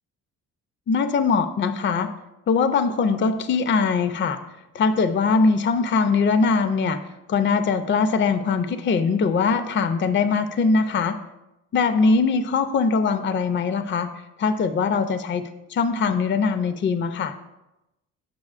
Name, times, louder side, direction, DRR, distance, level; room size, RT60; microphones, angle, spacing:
voice 1, 0.9-2.1 2.5-4.4 4.7-7.0 7.3-11.2 11.7-14.1 14.4-17.3, left 4 dB, 35° left, 10 dB, 0.5 m, -21 dB
7.5 x 5.8 x 2.4 m, 0.94 s
supercardioid pair, 55°, 35 cm